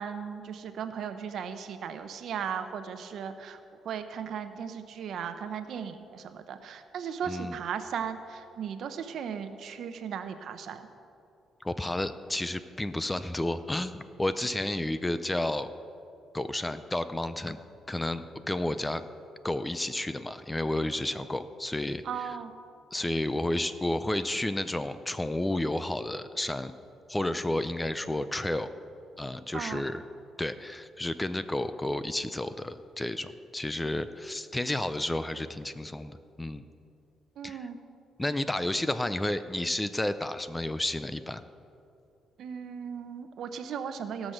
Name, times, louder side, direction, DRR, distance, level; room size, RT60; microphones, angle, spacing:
voice 1, 0.0-3.6 3.8-10.9 22.0-22.5 29.5-29.8 37.4-37.8 42.4-44.3, right 7 dB, 70° right, 9 dB, 0.8 m, -37 dB
voice 2, 11.6-15.7 16.3-17.6 17.9-19.0 19.4-22.3 22.9-26.7 27.1-28.7 29.2-30.0 30.4-36.6 37.4-37.7 38.2-41.5, left 1 dB, 15° left, 12 dB, 0.5 m, -31 dB
17.0 x 6.2 x 6.6 m, 2.6 s
cardioid pair, 90°, 0 cm